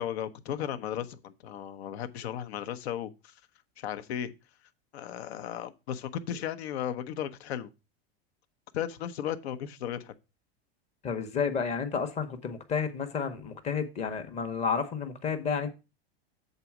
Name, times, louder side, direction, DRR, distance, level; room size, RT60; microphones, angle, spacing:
voice 1, 0.0-3.4 3.8-4.3 4.9-7.7 8.7-10.1, left 10 dB, 80° left, 1.0 m, -35 dB
voice 2, 11.0-15.7, left 6 dB, 20° left, 0.9 m, -31 dB
7.6 x 4.1 x 5.8 m
supercardioid pair, 160°, 31 cm